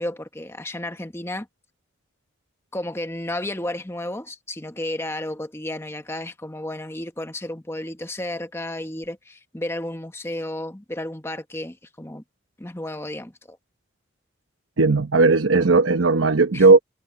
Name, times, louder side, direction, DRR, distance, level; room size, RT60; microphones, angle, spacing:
voice 1, 0.0-1.5 2.7-12.2 12.6-13.6 16.5-16.7, left 1 dB, 15° left, 1.1 m, -32 dB
voice 2, 14.8-16.8, right 3 dB, 80° right, 0.9 m, -16 dB
head